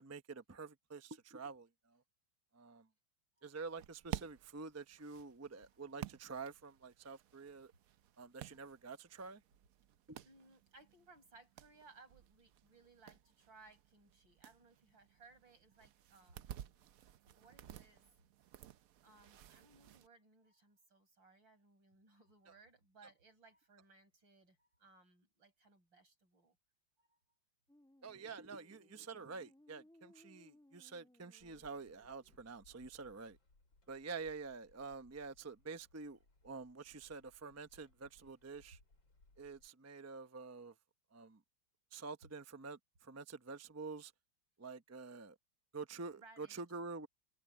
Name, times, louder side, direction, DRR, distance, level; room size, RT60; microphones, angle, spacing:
voice 1, 0.0-1.7 2.5-2.8 3.4-7.7 8.2-9.4 10.1-10.2 28.0-33.4 33.9-36.2 36.4-38.8 39.4-40.7 41.1-41.4 41.9-44.1 44.6-45.3 45.7-47.1, right 4 dB, 20° right, 0.4 m, -48 dB
sound 1, 3.7-20.1, right 11 dB, 65° right, 0.9 m, -53 dB
voice 2, 10.2-16.9 17.3-18.0 19.0-26.6 27.0-27.2 33.1-33.2 46.2-46.6, right 3 dB, 85° right, 7.4 m, -64 dB
sound 2, 27.7-32.5, left 1 dB, 5° left, 1.5 m, -67 dB
sound 3, 31.4-39.7, left 2 dB, 85° left, 6.1 m, -69 dB
omnidirectional pair, 2.0 m